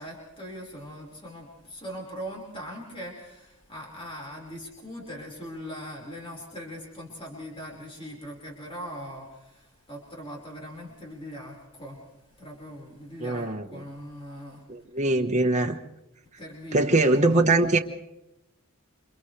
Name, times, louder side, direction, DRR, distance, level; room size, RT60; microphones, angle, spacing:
voice 1, 0.0-12.0 12.4-14.6 16.4-17.4, equal, 25° left, -2 dB, 5.1 m, -41 dB
voice 2, 13.2-13.8 14.7-15.8 16.7-17.8, right 2 dB, 30° right, 2 dB, 1.3 m, -22 dB
29.0 x 27.0 x 3.4 m, 0.89 s
head